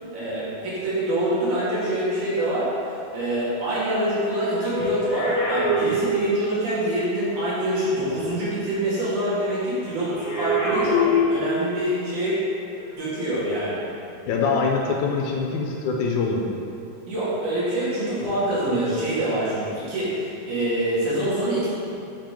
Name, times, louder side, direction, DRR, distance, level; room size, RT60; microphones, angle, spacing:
voice 1, 0.1-12.4 12.9-13.8 17.1-21.7, right 1 dB, 70° right, -10 dB, 3.4 m, -25 dB
sound 1, 4.0-6.8 9.9-11.9 12.7-12.9, left 1 dB, 40° left, 1.7 m, -25 dB
voice 2, 14.3-16.6, left 4 dB, 80° left, 0 dB, 2.0 m, -24 dB
7.6 x 5.1 x 4.5 m, 2.7 s
omnidirectional pair, 3.7 m